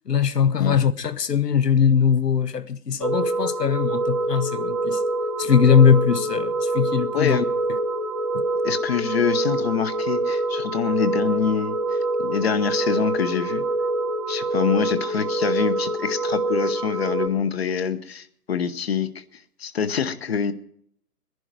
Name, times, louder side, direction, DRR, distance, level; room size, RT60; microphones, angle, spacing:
voice 1, 0.1-5.0 5.4-7.4 8.3-8.4, left 7 dB, 85° left, 1.0 m, -20 dB
sound 1, 3.0-17.3, right 2 dB, 20° right, 0.7 m, -25 dB
voice 2, 7.1-7.4 8.6-13.6 14.3-19.2 19.6-20.5, left 7 dB, 40° left, 0.9 m, -25 dB
19.0 x 11.0 x 4.6 m
figure-of-eight pair, 145°, 47 cm